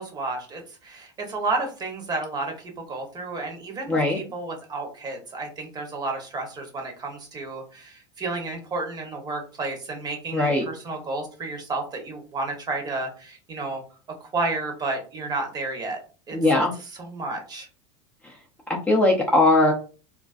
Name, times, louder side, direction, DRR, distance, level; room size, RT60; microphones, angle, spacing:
voice 1, 0.0-13.8 14.2-16.0 16.3-16.4 17.0-17.7, right 3 dB, 30° right, 3 dB, 0.9 m, -31 dB
voice 2, 3.9-4.2 10.3-10.6 16.3-16.7 18.2-18.3 18.7-19.7, left 2 dB, 10° left, -2 dB, 0.5 m, -20 dB
2.4 x 2.2 x 2.4 m, 0.36 s
hypercardioid pair, 95°, 15 cm